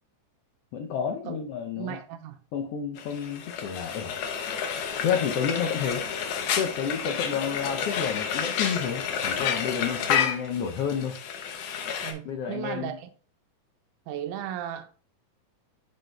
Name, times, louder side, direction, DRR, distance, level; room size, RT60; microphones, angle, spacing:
voice 1, 0.7-2.0 2.5-4.2 5.0-6.0 6.5-11.1 12.2-13.0, left 7 dB, 90° left, 1.3 m, -30 dB
voice 2, 1.8-2.4 12.0-13.1 14.1-14.9, right 10 dB, 85° right, 2.1 m, -35 dB
Frying (food), 3.0-12.1, left 7 dB, 70° left, 1.5 m, -30 dB
7.6 x 6.7 x 2.3 m
omnidirectional pair, 3.6 m